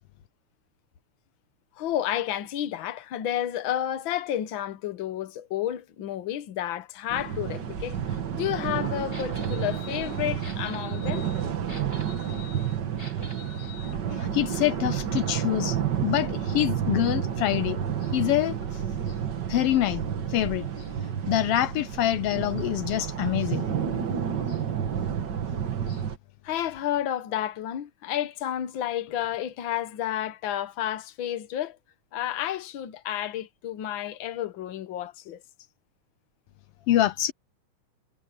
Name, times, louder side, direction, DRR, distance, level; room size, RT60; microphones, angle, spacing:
voice 1, 1.8-8.0 8.3-11.3 13.9-14.0 17.3-17.4 26.4-31.8 32.1-35.4, left 11 dB, 60° left, 1.4 m, -31 dB
sound 1, 7.1-26.2, right 8 dB, 50° right, 1.5 m, -30 dB
sound 2, 9.1-13.9, left 3 dB, 15° left, 8.2 m, -46 dB
voice 2, 14.1-17.8 18.1-18.8 19.5-20.0 20.3-20.7 21.3-23.7 24.5-24.6 25.9-26.0 36.9-37.3, left 13 dB, 80° left, 1.3 m, -26 dB
omnidirectional pair, 3.4 m